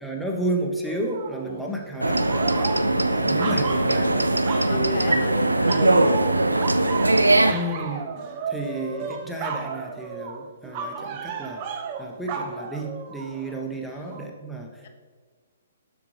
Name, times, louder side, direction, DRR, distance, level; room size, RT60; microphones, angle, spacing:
voice 1, 0.0-6.2 7.5-8.1 8.5-14.9, right 1 dB, ahead, 0 dB, 0.9 m, -32 dB
sound 1, 0.8-1.6 2.0-4.7 5.0-5.4 5.7-13.6 14.1-14.2, right 6 dB, 35° right, 0.6 m, -34 dB
sound 2, 2.0-7.5, right 2 dB, 85° right, 0.3 m, -21 dB
voice 2, 4.5-6.0 6.3-8.0 8.5-8.8 13.9-14.1 14.8-14.9, left 6 dB, 50° left, 7 dB, 0.4 m, -39 dB
7.1 x 6.0 x 3.2 m, 1.5 s
figure-of-eight pair, 125°, 0 cm